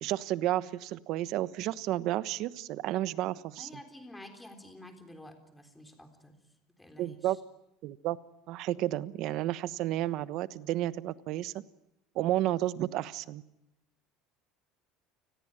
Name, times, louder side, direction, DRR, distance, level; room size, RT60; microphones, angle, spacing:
voice 1, 0.0-3.7 7.0-7.4 7.8-8.2 8.5-11.5 12.1-13.4, right 14 dB, 50° right, 15 dB, 1.1 m, -31 dB
voice 2, 3.6-6.4 6.8-7.4, left 1 dB, 5° left, 6 dB, 3.8 m, -50 dB
30.0 x 21.0 x 8.9 m, 0.86 s
cardioid pair, 165°, 0 cm